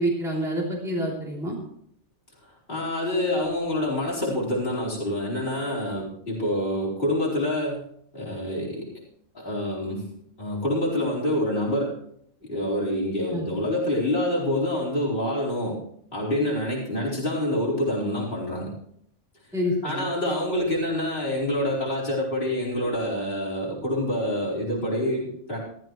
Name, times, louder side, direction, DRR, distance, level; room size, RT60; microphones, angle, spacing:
voice 1, 0.0-1.6 13.3-13.4 19.5-20.1, equal, ahead, -5 dB, 3.3 m, -27 dB
voice 2, 2.7-7.8 8.1-8.9 9.3-10.1 10.4-11.9 12.4-15.8 16.1-18.7 19.8-25.6, left 1 dB, 40° left, -6 dB, 4.9 m, -26 dB
16.0 x 13.5 x 3.2 m, 0.68 s
omnidirectional pair, 1.5 m